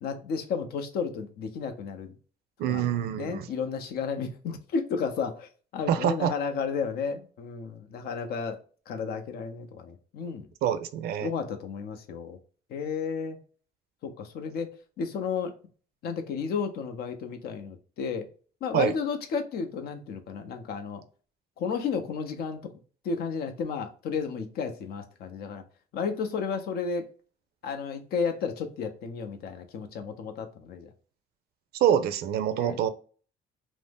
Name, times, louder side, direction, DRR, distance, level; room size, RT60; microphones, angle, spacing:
voice 1, 0.0-2.1 2.7-2.8 3.2-8.6 8.9-10.5 11.2-12.4 12.7-13.4 14.0-14.7 15.0-15.5 16.0-18.3 18.6-21.0 21.6-22.6 23.0-25.6 25.9-27.1 27.6-30.9 32.6-32.8, left 5 dB, 65° left, 0.6 m, -32 dB
voice 2, 2.6-3.5 5.9-6.3 10.6-11.3 18.7-18.9 31.8-32.9, right 9 dB, 70° right, 0.4 m, -25 dB
2.6 x 2.0 x 3.4 m
cardioid pair, 110°, 17 cm